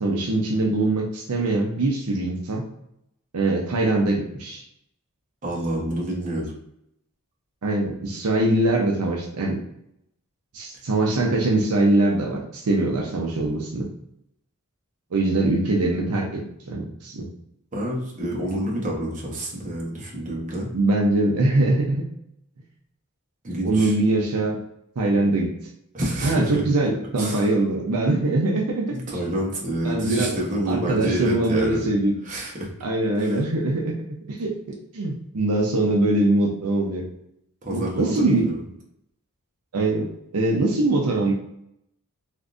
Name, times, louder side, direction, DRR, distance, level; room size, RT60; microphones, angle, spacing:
voice 1, 0.0-2.6 3.3-4.6 7.6-9.6 10.5-13.9 15.1-17.3 20.7-22.0 23.6-24.6 25.0-25.5 26.2-28.9 29.8-30.4 30.7-32.1 32.8-33.9 34.3-34.5 34.9-37.0 37.7-38.5 39.7-41.3, right 2 dB, 85° right, 0 dB, 0.6 m, -22 dB
voice 2, 5.4-6.5 17.7-20.7 23.4-24.0 25.9-26.6 27.2-27.5 28.9-31.9 32.2-32.7 33.2-33.4 37.6-38.6, right 1 dB, 35° right, -3 dB, 1.0 m, -28 dB
3.5 x 2.6 x 2.5 m, 0.77 s
head